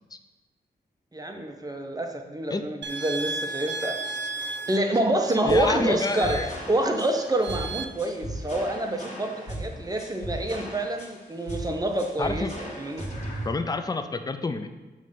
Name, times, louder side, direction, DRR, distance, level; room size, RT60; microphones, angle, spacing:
voice 1, 1.1-4.0 4.7-13.1, right 1 dB, 20° right, 4 dB, 0.7 m, -27 dB
sound 1, 2.8-7.9, right 3 dB, 80° right, 0.4 m, -35 dB
voice 2, 5.4-6.5 12.2-12.5 13.4-14.7, left 3 dB, 20° left, 9 dB, 0.4 m, -28 dB
sound 2, 5.5-13.5, right 1 dB, 40° left, 1.8 m, -37 dB
7.3 x 3.2 x 5.2 m, 1.2 s
wide cardioid pair, 85°, 18 cm